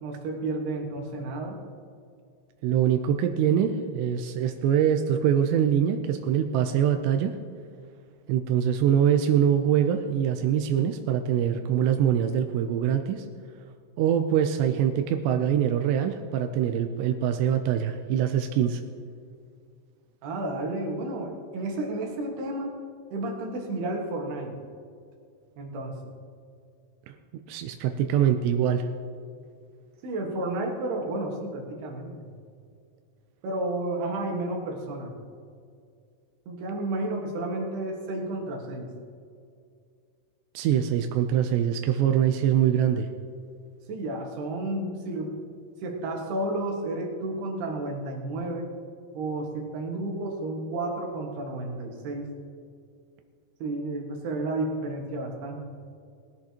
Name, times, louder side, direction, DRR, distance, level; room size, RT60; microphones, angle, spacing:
voice 1, 0.0-1.6 20.2-22.7 23.1-24.5 25.6-26.0 30.0-32.3 33.4-35.1 36.5-38.9 43.9-45.3 45.8-48.7 49.1-52.3 53.6-55.6, right 2 dB, 65° right, 1 dB, 3.3 m, -31 dB
voice 2, 2.6-7.3 8.3-13.2 14.0-18.8 27.5-28.9 40.5-43.1, right 9 dB, 85° right, 6 dB, 2.5 m, -24 dB
19.5 x 13.5 x 2.9 m, 2.3 s
omnidirectional pair, 5.6 m